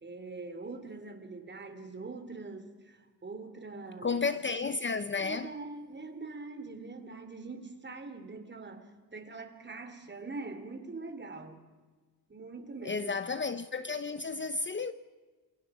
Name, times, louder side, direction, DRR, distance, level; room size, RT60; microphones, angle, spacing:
voice 1, 0.0-4.2 5.2-11.6 12.3-13.1, right 3 dB, 25° right, 3.0 m, -43 dB
voice 2, 4.0-5.6 12.8-14.9, left 4 dB, 30° left, 0.8 m, -32 dB
28.0 x 23.0 x 4.9 m
wide cardioid pair, 130°, 39 cm